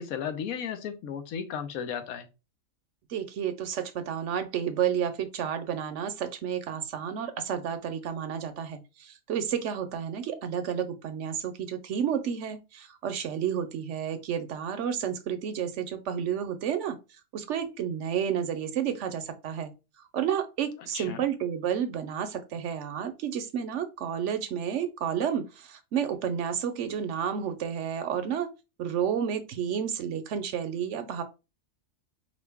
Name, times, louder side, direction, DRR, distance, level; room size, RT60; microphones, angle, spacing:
voice 1, 0.0-2.3 20.9-21.2, left 7 dB, 85° left, 1.2 m, -34 dB
voice 2, 3.1-17.0 17.3-19.7 20.1-28.5 28.8-31.2, right 8 dB, 65° right, 0.8 m, -31 dB
5.0 x 2.5 x 3.4 m
omnidirectional pair, 1.4 m